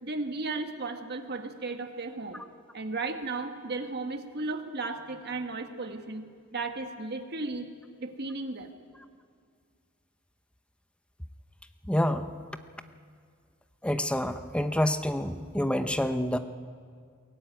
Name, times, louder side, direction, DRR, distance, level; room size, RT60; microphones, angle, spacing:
voice 1, 0.0-2.4 2.7-6.3 6.5-7.7 8.0-8.7, right 3 dB, 50° right, 6 dB, 1.6 m, -35 dB
voice 2, 11.9-12.3 13.8-16.4, left 1 dB, 5° left, 9 dB, 0.8 m, -27 dB
22.5 x 17.0 x 9.4 m, 2.1 s
head